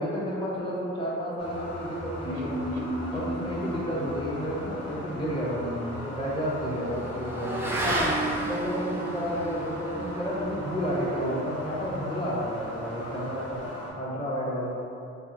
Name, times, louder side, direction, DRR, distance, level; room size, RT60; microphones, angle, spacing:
voice 1, 0.0-2.6 3.1-7.7 8.2-13.6 14.0-14.8, equal, 15° left, -6 dB, 0.7 m, -31 dB
sound 1, 1.4-13.9, left 1 dB, 55° left, 0.8 m, -39 dB
sound 2, 2.2-6.1 6.4-6.5 6.8-6.9, equal, 85° right, 0.5 m, -35 dB
Motorcycle / Accelerating revving vroom, 4.8-13.6, right 1 dB, 10° right, 0.3 m, -34 dB
2.7 x 2.5 x 2.5 m, 2.5 s
cardioid pair, 90°, 30 cm